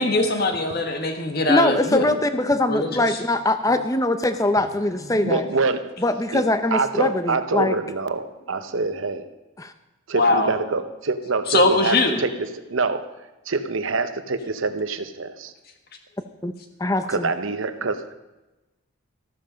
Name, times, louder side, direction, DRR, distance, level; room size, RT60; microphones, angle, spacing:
voice 1, 0.0-2.1 2.7-3.2 5.0-5.2 10.1-10.5 11.5-12.2, left 2 dB, 45° left, 5 dB, 1.6 m, -21 dB
voice 2, 1.5-5.4 6.0-7.7 9.6-9.7 16.4-16.5 16.8-17.3, left 1 dB, 15° left, 9 dB, 0.7 m, -22 dB
voice 3, 5.2-5.8 6.3-6.4 6.7-9.3 10.1-12.3 12.7-13.0 13.5-15.5 17.1-18.1, right 3 dB, 65° right, 10 dB, 0.9 m, -25 dB
13.5 x 13.0 x 5.2 m, 1.1 s
head